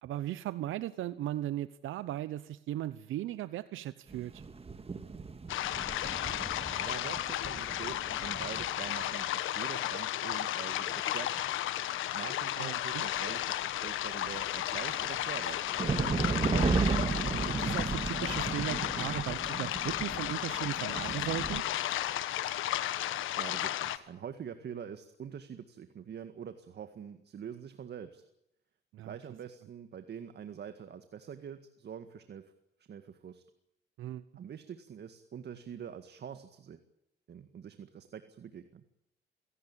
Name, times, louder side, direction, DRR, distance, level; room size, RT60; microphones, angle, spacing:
voice 1, 0.0-4.4 12.6-13.0 17.3-21.6 28.9-29.2 34.0-34.2, right 13 dB, 80° right, 15 dB, 0.9 m, -37 dB
sound 1, 4.1-9.3 14.3-21.6, right 4 dB, 30° right, 2.1 m, -35 dB
sound 2, 5.5-24.0, left 13 dB, 85° left, 1.4 m, -34 dB
voice 2, 6.3-11.5 12.1-16.5 22.9-28.2 29.0-32.5 32.9-33.4 34.4-36.8 37.3-38.8, right 8 dB, 55° right, 9 dB, 1.9 m, -45 dB
27.5 x 17.5 x 8.8 m, 0.82 s
cardioid pair, 90°, 20 cm